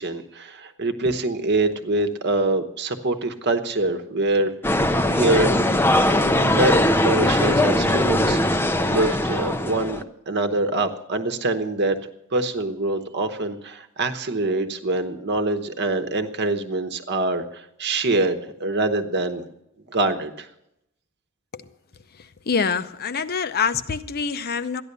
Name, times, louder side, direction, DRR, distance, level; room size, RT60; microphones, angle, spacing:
voice 1, 0.0-4.5 5.1-5.9 6.3-12.0 12.3-19.4 19.9-20.5, right 2 dB, 50° right, 9 dB, 1.0 m, -25 dB
sound 1, 4.6-10.0, left 1 dB, 10° left, 0.5 m, -20 dB
voice 2, 22.5-24.8, left 5 dB, 45° left, 13 dB, 0.7 m, -25 dB
13.5 x 10.5 x 6.7 m, 0.83 s
head